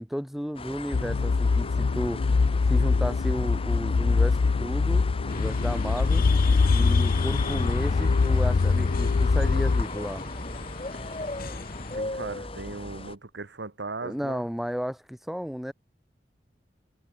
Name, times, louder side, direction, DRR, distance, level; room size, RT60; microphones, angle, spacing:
voice 1, 0.0-2.3 2.7-6.2 6.7-10.2 14.0-15.7, equal, ahead, 0.7 m, -33 dB
sound 1, 0.5-13.1, left 2 dB, 35° left, 3.1 m, -37 dB
sound 2, 0.9-9.8, left 4 dB, 85° left, 0.5 m, -23 dB
sound 3, 5.3-12.0, left 3 dB, 55° left, 2.0 m, -38 dB
voice 2, 11.9-14.5, right 3 dB, 85° right, 1.4 m, -38 dB
head